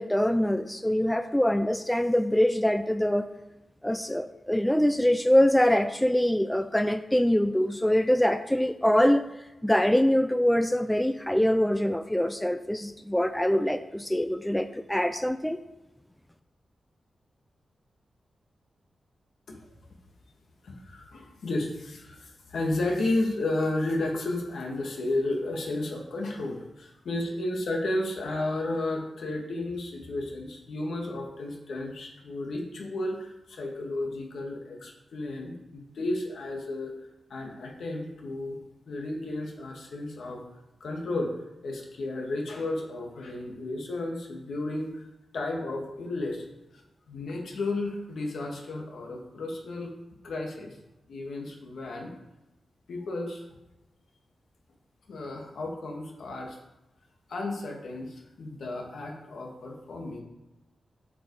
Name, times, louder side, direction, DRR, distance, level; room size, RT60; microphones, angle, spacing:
voice 1, 0.0-3.3 3.8-9.3 9.6-15.6, left 1 dB, 5° left, 10 dB, 0.3 m, -24 dB
voice 2, 20.6-36.9 37.3-38.6 38.9-40.4 40.8-45.1 45.3-46.4 46.7-46.8 47.1-49.9 50.2-50.8 51.1-52.1 52.9-53.4 55.1-56.6 57.3-60.2, left 2 dB, 70° left, 1 dB, 2.0 m, -33 dB
7.9 x 7.8 x 4.8 m, 0.98 s
wide cardioid pair, 160°, 0 cm